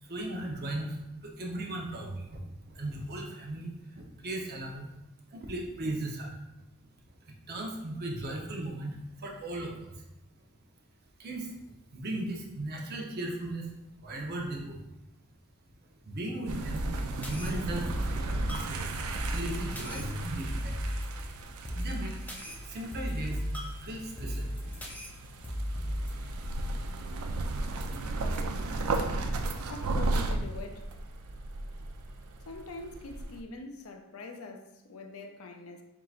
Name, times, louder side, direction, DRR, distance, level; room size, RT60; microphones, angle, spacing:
voice 1, 0.0-2.4 2.6-4.9 5.3-6.4 7.2-10.0 11.2-11.6 11.9-13.7 14.0-14.8 16.0-19.0 19.3-20.8 21.1-21.2 21.7-22.2 22.4-23.4 23.8-24.9, right 1 dB, 50° right, 0.8 m, -37 dB
sound 1, 16.5-33.4, right 2 dB, 90° right, 0.4 m, -35 dB
sound 2, 16.7-26.7, equal, 10° left, 0.5 m, -37 dB
voice 2, 29.7-30.9 32.5-35.8, left 3 dB, 75° left, 0.5 m, -44 dB
4.6 x 3.7 x 2.4 m
head